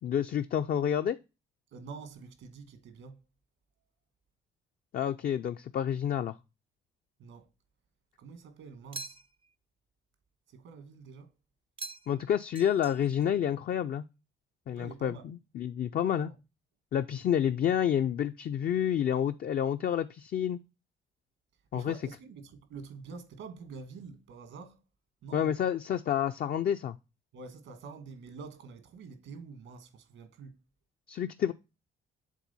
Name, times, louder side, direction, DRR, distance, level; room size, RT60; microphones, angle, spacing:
voice 1, 0.0-1.2 4.9-6.4 12.1-14.0 14.7-15.1 15.5-16.3 16.9-20.6 21.7-22.0 25.3-27.0 31.1-31.5, left 9 dB, 50° left, 0.4 m, -29 dB
voice 2, 1.7-3.2 7.2-7.5 8.2-9.2 10.5-11.3 14.7-15.3 16.1-16.3 21.7-24.8 25.2-25.6 27.3-30.6, right 5 dB, 85° right, 1.4 m, -47 dB
sound 1, 8.9-9.5 11.8-12.3 12.5-13.3, right 3 dB, 25° right, 0.4 m, -44 dB
7.3 x 3.7 x 4.0 m
cardioid pair, 90°, 20 cm